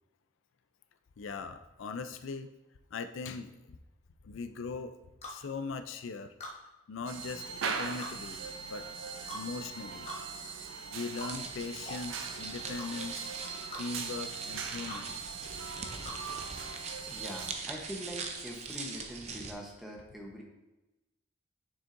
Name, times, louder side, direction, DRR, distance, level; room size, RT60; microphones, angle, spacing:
voice 1, 1.2-2.5 2.9-3.8 4.2-5.0 5.3-6.3 6.9-8.4 8.7-8.9 9.3-10.1 10.9-13.3 13.8-15.1 17.3-17.5 18.0-18.1, left 4 dB, 85° left, 10 dB, 0.4 m, -40 dB
sound 1, 5.2-5.4 6.4-6.6 8.0-8.2 9.3-9.5 10.1-10.2 11.2-11.3 11.9-12.0 12.8-12.9 13.7-13.9 14.9-15.0 16.1-16.2, left 1 dB, 30° left, 1.2 m, -42 dB
sound 2, 7.1-17.5, right 5 dB, 85° right, 0.6 m, -40 dB
sound 3, 11.1-19.5, right 4 dB, 35° right, 0.6 m, -43 dB
voice 2, 16.5-20.4, equal, ahead, -2 dB, 0.9 m, -44 dB
7.1 x 6.2 x 2.6 m, 1.0 s
head